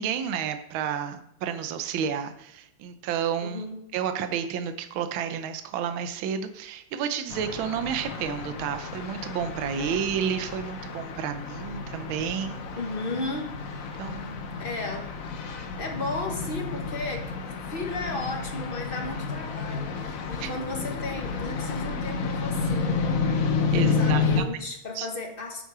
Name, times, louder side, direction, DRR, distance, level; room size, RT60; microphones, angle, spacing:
voice 1, 0.0-3.6 3.9-12.7 14.0-14.6 20.4-20.5 23.7-24.2 24.9-25.1, right 8 dB, 75° right, 8 dB, 1.5 m, -31 dB
voice 2, 3.4-3.9 9.8-10.1 12.8-13.6 14.6-15.1 15.4-23.3 23.6-25.7, left 2 dB, 30° left, 2 dB, 1.4 m, -35 dB
sound 1, 7.3-24.4, left 5 dB, 55° left, 1.0 m, -30 dB
9.5 x 7.5 x 4.8 m, 0.74 s
omnidirectional pair, 2.3 m